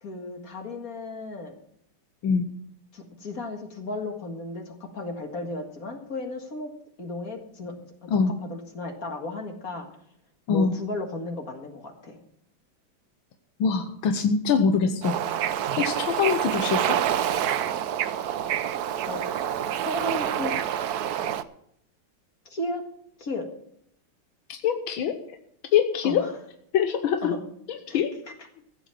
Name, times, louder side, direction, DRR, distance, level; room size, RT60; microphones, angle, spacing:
voice 1, 0.0-1.5 2.9-6.7 7.0-7.7 8.4-9.9 10.5-12.2 19.1-19.2 19.8-20.7 22.5-22.8 23.2-23.5 26.0-26.3 27.2-27.4 27.9-28.0, left 2 dB, 45° left, 3 dB, 2.1 m, -34 dB
voice 2, 13.6-15.2 15.8-17.0 24.5-25.1 25.7-26.2 26.7-27.3 27.7-28.1, left 6 dB, 90° left, 6 dB, 1.8 m, -23 dB
Bird / Ocean, 15.0-21.4, right 10 dB, 65° right, 1.0 m, -27 dB
16.0 x 7.1 x 7.4 m, 0.70 s
omnidirectional pair, 2.1 m